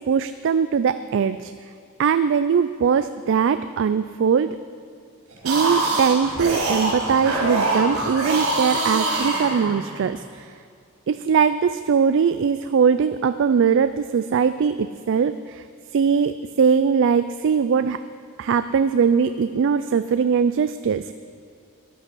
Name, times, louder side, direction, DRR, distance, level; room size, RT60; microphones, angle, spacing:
voice 1, 0.1-1.5 2.0-4.6 5.4-10.5 11.1-15.6 15.9-18.0 18.4-21.1, right 6 dB, 60° right, 12 dB, 0.4 m, -21 dB
sound 1, 5.3-10.1, right 2 dB, 90° right, 4.2 m, -24 dB
13.5 x 10.0 x 6.2 m, 2.3 s
head